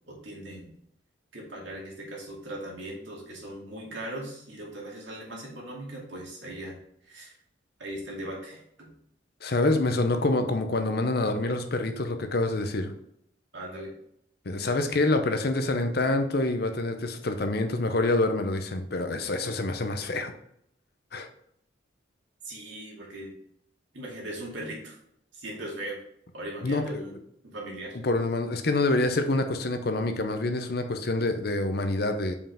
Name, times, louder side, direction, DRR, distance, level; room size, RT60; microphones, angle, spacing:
voice 1, 0.1-0.7 1.3-6.8 7.0-7.4 7.8-8.9 13.5-13.9 22.4-23.3 23.9-25.0 25.3-26.0 26.3-27.1 27.4-28.0, right 1 dB, 75° right, -3 dB, 2.3 m, -39 dB
voice 2, 9.4-12.9 14.5-20.3 21.1-21.3 26.6-27.0 28.0-32.3, left 2 dB, 55° left, 7 dB, 0.7 m, -26 dB
5.3 x 4.9 x 3.7 m, 0.71 s
head